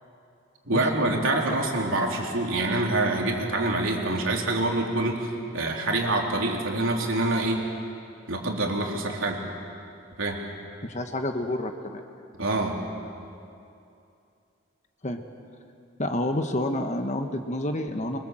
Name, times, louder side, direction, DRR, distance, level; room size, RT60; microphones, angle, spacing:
voice 1, 0.7-7.6 8.3-9.4 10.2-10.4 12.4-12.8, right 2 dB, 75° right, 0 dB, 3.6 m, -26 dB
voice 2, 10.8-12.0 15.0-15.2 16.0-18.2, left 1 dB, 35° left, 5 dB, 1.3 m, -29 dB
24.5 x 24.0 x 7.7 m, 2.6 s
head